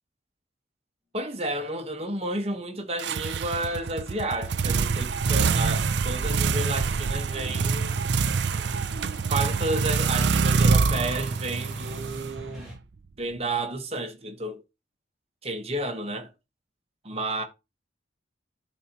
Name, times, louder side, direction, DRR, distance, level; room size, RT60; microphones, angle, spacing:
voice 1, 1.1-7.9 9.3-12.7 13.2-14.6 15.4-16.3 17.0-17.4, right 2 dB, 30° right, 1.3 m, -31 dB
sound 1, 3.0-12.8, right 5 dB, 70° right, 0.5 m, -25 dB
sound 2, 4.5-12.7, left 1 dB, 5° right, 3.6 m, -46 dB
12.5 x 4.3 x 3.0 m
head